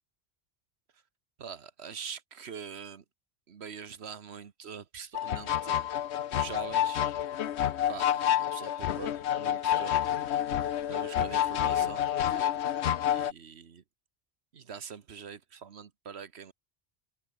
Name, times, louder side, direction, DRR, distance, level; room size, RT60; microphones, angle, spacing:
voice 1, 1.4-3.0 3.5-5.9 6.3-7.1 7.9-10.2 10.6-12.6 13.1-13.8 14.5-16.5, right 7 dB, 80° right, 1.4 m, -44 dB
sound 1, 5.1-13.3, left 10 dB, 85° left, 1.0 m, -29 dB
omnidirectional pair, 1.1 m